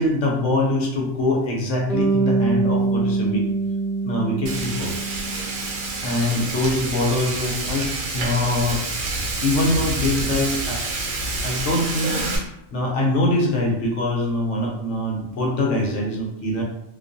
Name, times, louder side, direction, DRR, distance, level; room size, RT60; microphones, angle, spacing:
voice 1, 0.0-3.4 4.0-4.9 6.0-8.8 9.4-10.8 11.4-16.6, left 1 dB, 65° left, -2 dB, 0.9 m, -23 dB
Bass guitar, 1.9-6.0, right 3 dB, 5° right, 0.5 m, -24 dB
Frying (food), 4.5-12.4, right 3 dB, 80° right, 1.1 m, -28 dB
Speech / Wind, 6.6-11.5, right 1 dB, 65° right, 0.7 m, -35 dB
2.3 x 2.2 x 2.5 m, 0.80 s
omnidirectional pair, 1.4 m